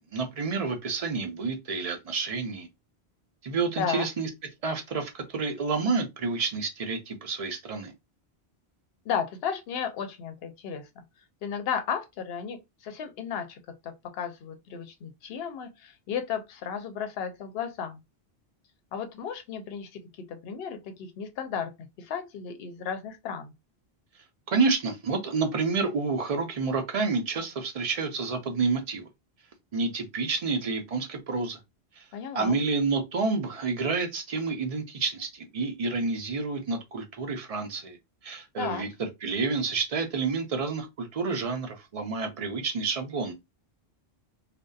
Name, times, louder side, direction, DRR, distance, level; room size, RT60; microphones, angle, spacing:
voice 1, 0.1-2.7 3.4-4.3 4.6-7.9 24.5-29.1 29.7-31.6 32.0-32.1 32.3-38.0 38.2-38.9 39.2-43.3, right 4 dB, 45° right, 0.5 m, -29 dB
voice 2, 9.1-10.9 11.4-18.0 18.9-20.0 20.3-21.7 22.0-23.5 32.1-32.6 38.6-38.8, left 7 dB, 70° left, 0.8 m, -34 dB
2.6 x 2.1 x 2.2 m
omnidirectional pair, 1.1 m